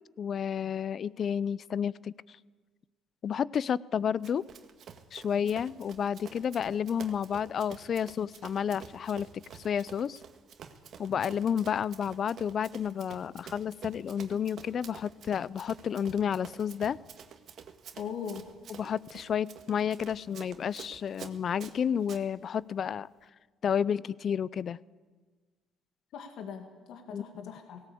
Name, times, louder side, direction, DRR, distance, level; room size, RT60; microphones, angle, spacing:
voice 1, 0.2-2.1 3.2-4.5 5.1-9.3 9.5-10.2 11.0-17.0 18.7-23.1 23.6-24.8 27.1-27.5, left 8 dB, 50° left, 21 dB, 0.5 m, -31 dB
Run, 4.2-22.2, right 7 dB, 55° right, 1.8 m, -49 dB
voice 2, 18.0-18.5 26.1-27.9, left 7 dB, 70° left, 5 dB, 2.1 m, -40 dB
17.5 x 17.5 x 8.5 m, 1.4 s
cardioid pair, 90°, 0 cm